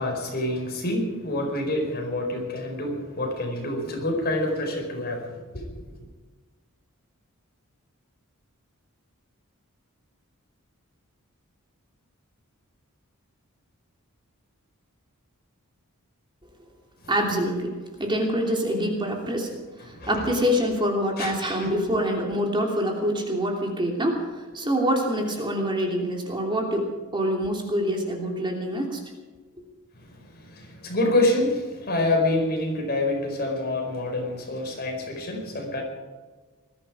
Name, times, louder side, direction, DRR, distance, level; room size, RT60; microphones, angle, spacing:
voice 1, 0.0-6.1 17.0-17.1 19.9-20.1 21.2-21.3 21.6-21.7 29.9-35.8, left 1 dB, 45° left, 2 dB, 4.6 m, -27 dB
voice 2, 17.1-29.0, equal, 20° right, 1 dB, 3.0 m, -26 dB
20.5 x 14.0 x 5.0 m, 1.4 s
head